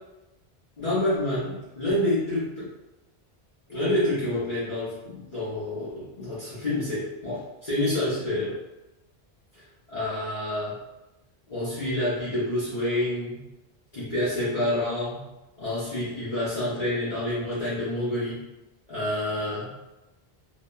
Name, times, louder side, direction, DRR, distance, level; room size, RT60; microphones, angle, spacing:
voice 1, 0.8-2.7 3.7-8.6 9.9-10.8 11.5-13.4 13.9-15.2 15.6-18.4 18.9-19.8, left 1 dB, 45° left, -11 dB, 0.8 m, -28 dB
3.0 x 2.1 x 2.2 m, 0.97 s
omnidirectional pair, 1.1 m